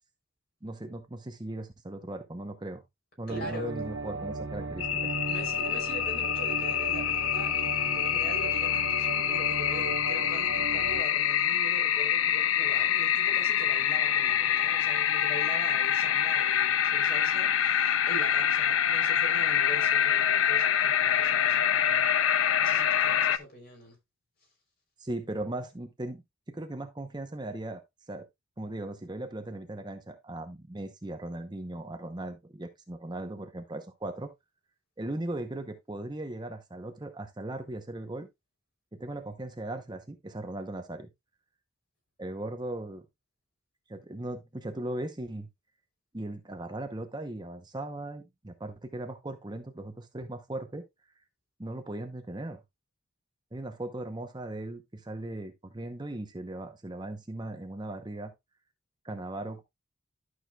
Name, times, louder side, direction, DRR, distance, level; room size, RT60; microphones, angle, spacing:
voice 1, 0.6-2.8 3.2-5.1 25.0-26.2 26.5-27.8 28.1-28.2 28.6-34.3 35.0-38.3 38.9-41.1 42.2-43.0 43.9-45.5 46.1-50.8 51.6-52.6 53.5-58.3 59.0-59.6, right 1 dB, 20° right, 0.8 m, -38 dB
voice 2, 3.3-3.9 5.2-24.0, equal, 45° left, 3.6 m, -43 dB
sound 1, 3.3-11.0, right 3 dB, 70° right, 1.1 m, -37 dB
sound 2, 4.8-23.4, left 9 dB, 80° left, 0.5 m, -26 dB
11.5 x 6.4 x 2.3 m
head